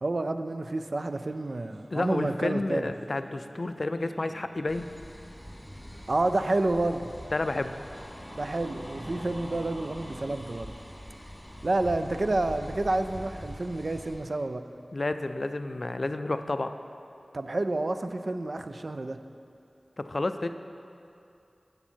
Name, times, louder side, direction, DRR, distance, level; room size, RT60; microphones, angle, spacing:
voice 1, 0.0-2.9 6.1-7.1 8.3-10.7 11.6-14.6 17.3-19.2, right 2 dB, 60° right, 9 dB, 0.3 m, -29 dB
Singing, 1.0-12.1, equal, 40° right, 0.9 m, -55 dB
voice 2, 1.9-4.9 7.3-7.7 14.9-16.7 20.0-20.5, left 2 dB, 55° left, 9 dB, 0.3 m, -30 dB
sound 1, 4.7-14.1, equal, ahead, 1.3 m, -43 dB
7.8 x 7.1 x 4.4 m, 2.6 s
wide cardioid pair, 60°, 0 cm